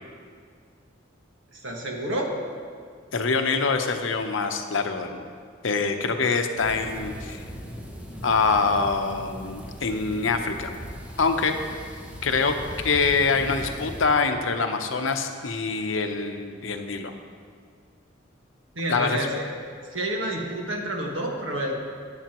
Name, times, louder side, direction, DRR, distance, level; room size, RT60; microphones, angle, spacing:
voice 1, 1.6-2.3 18.8-19.6 19.9-21.8, right 1 dB, 80° right, -1 dB, 1.7 m, -29 dB
voice 2, 3.1-5.3 5.6-7.4 8.2-10.7 11.2-11.6 12.2-17.1 18.9-19.3, left 4 dB, 85° left, 6 dB, 0.8 m, -25 dB
sound 1, 6.6-14.0, equal, 5° right, 0.9 m, -39 dB
14.5 x 9.9 x 3.0 m, 2.1 s
head